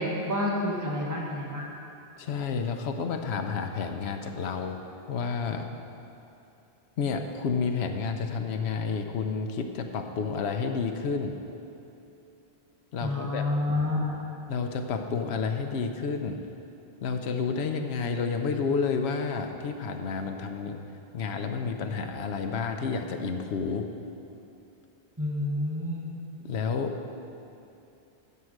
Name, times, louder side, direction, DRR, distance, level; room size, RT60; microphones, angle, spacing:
voice 1, 0.0-1.7 13.0-14.1 25.2-26.1, left 1 dB, 15° right, -3 dB, 1.4 m, -29 dB
voice 2, 2.2-4.8 5.1-5.7 7.0-11.4 12.9-13.4 14.5-16.4 17.0-20.8 21.1-23.9 26.4-27.0, left 5 dB, 80° left, 5 dB, 1.0 m, -30 dB
13.5 x 4.7 x 6.5 m, 2.8 s
omnidirectional pair, 1.1 m